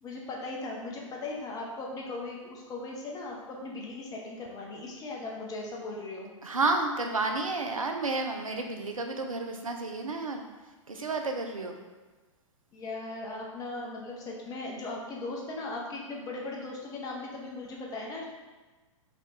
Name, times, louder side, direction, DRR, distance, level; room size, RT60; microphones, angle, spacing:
voice 1, 0.0-6.3 12.7-18.2, left 2 dB, 20° left, -2 dB, 0.7 m, -38 dB
voice 2, 6.4-10.4 10.9-11.8, right 3 dB, 85° right, 4 dB, 0.6 m, -31 dB
4.1 x 2.4 x 4.2 m, 1.3 s
figure-of-eight pair, 105°, 17 cm